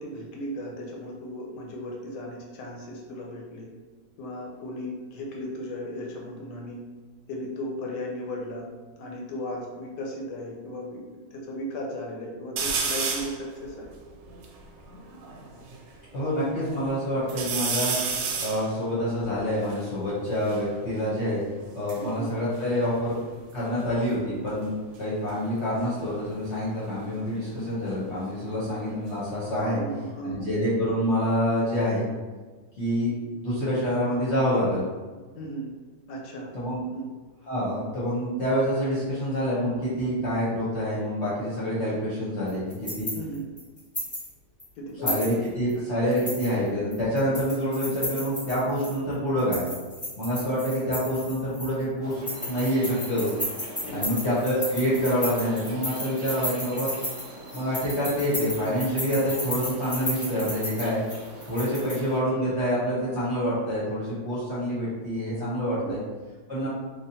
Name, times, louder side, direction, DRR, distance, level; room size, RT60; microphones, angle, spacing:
voice 1, 0.0-3.7 4.2-6.8 7.3-8.7 9.0-11.0 11.3-13.9 22.0-22.3 29.6-30.5 35.3-35.7 36.1-36.5 36.9-37.1 43.1-43.4 44.8-45.1 45.8-45.9 53.8-54.2 65.8-65.9 66.6-66.7, equal, 75° left, -1 dB, 1.1 m, -36 dB
sound 1, 12.6-13.4 14.0-14.1 14.2-15.8 16.3-16.9 17.3-20.7 21.6-23.5 23.8-24.3 25.8-28.5 28.8-29.6, right 5 dB, 90° right, 1.3 m, -33 dB
voice 2, 16.1-17.9 18.4-21.4 21.7-23.1 23.5-29.8 30.2-32.0 32.8-34.8 36.5-36.8 37.5-43.1 45.0-49.6 50.2-52.2 52.5-53.3 53.9-56.9 57.5-61.0 61.4-66.0 66.5-66.7, equal, 50° left, -9 dB, 0.9 m, -27 dB
sound 2, 42.5-44.3 44.6-44.7 45.0-45.7 46.1-49.0 49.4-51.8 52.1-61.9, left 1 dB, 20° left, 0.5 m, -34 dB
sound 3, 52.0-62.2, right 1 dB, 60° right, 0.8 m, -44 dB
3.4 x 2.3 x 2.7 m, 1.4 s
omnidirectional pair, 1.9 m